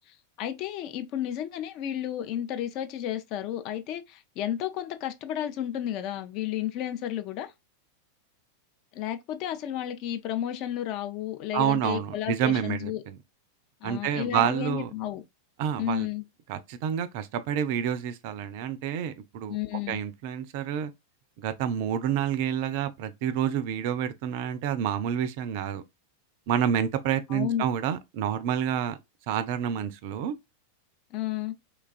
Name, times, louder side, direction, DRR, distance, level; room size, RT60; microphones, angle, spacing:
voice 1, 0.4-7.5 8.9-13.0 13.8-15.2 15.8-16.2 19.5-20.0 27.3-27.7 31.1-31.5, left 11 dB, 40° left, 0.4 m, -32 dB
voice 2, 11.5-13.2 13.8-14.9 15.6-16.1 16.5-19.6 19.9-20.9 21.4-25.8 26.5-29.0 29.3-30.3, right 9 dB, 50° right, 0.3 m, -28 dB
3.1 x 2.3 x 2.3 m
figure-of-eight pair, 90°, 0 cm